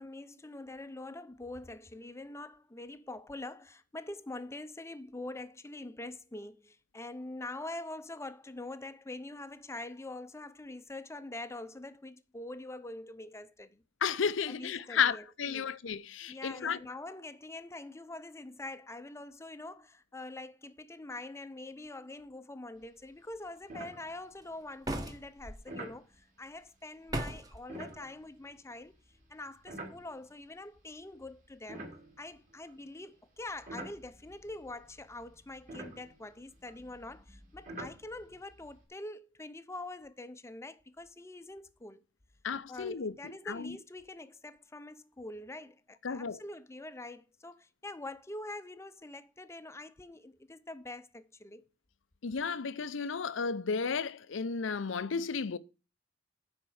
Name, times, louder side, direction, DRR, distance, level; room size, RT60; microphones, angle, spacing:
voice 1, 0.0-13.8 14.5-15.7 16.3-28.9 29.3-31.9 32.2-42.0 42.7-51.7, left 2 dB, 15° left, 0.6 m, -45 dB
voice 2, 14.0-16.8 42.4-43.8 46.0-46.4 52.2-55.6, left 6 dB, 80° left, 0.6 m, -33 dB
sound 1, 22.8-23.1 23.3-23.4 23.7-24.5 25.7-26.0 27.6-30.5 31.1-32.8 33.4-38.8, right 1 dB, 45° right, 3.0 m, -48 dB
sound 2, 24.8-25.6 27.1-27.6, right 1 dB, 20° right, 1.1 m, -36 dB
9.8 x 4.4 x 6.3 m
head